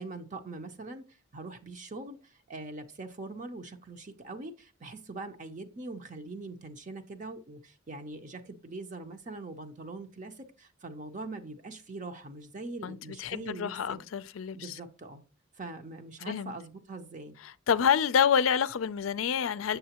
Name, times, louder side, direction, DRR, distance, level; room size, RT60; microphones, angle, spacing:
voice 1, 0.0-14.1 14.5-15.2 15.5-17.3, right 2 dB, 40° right, 0.6 m, -42 dB
voice 2, 12.8-14.8 16.3-16.5 17.4-19.8, left 7 dB, 80° left, 0.4 m, -28 dB
7.2 x 6.7 x 2.9 m
head